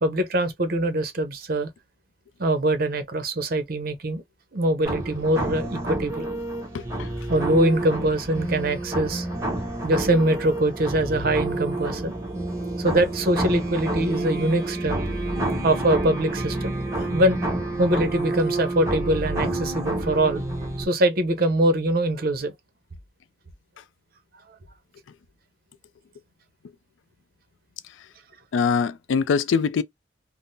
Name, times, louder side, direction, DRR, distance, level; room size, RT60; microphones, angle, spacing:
voice 1, 0.0-1.7 2.4-4.2 4.5-6.3 7.3-9.3 9.8-12.2 12.8-15.0 15.6-17.4 17.8-20.4 20.8-22.5 24.5-24.6, right 1 dB, 50° right, 0.7 m, -23 dB
sound 1, 4.8-20.8, right 1 dB, 15° right, 1.0 m, -29 dB
voice 2, 6.7-7.1 28.5-29.8, left 5 dB, 85° left, 0.4 m, -23 dB
3.6 x 2.0 x 2.6 m
head